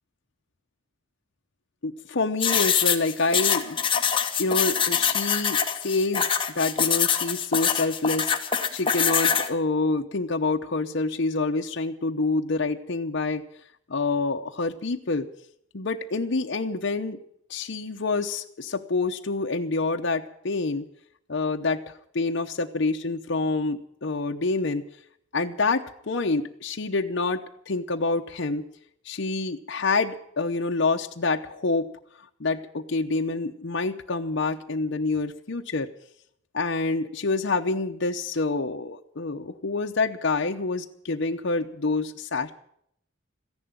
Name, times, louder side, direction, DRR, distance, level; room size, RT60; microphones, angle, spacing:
voice 1, 1.8-3.8 4.4-6.3 6.5-8.3 8.7-13.4 13.9-15.3 15.7-17.2 17.5-20.8 21.3-24.8 25.3-28.7 29.1-31.9 32.4-35.9 36.5-42.5, left 3 dB, 60° left, 4 dB, 0.8 m, -27 dB
garcia - writing with marker, 2.4-9.5, left 7 dB, 25° left, 1.2 m, -24 dB
14.5 x 11.0 x 8.9 m, 0.68 s
head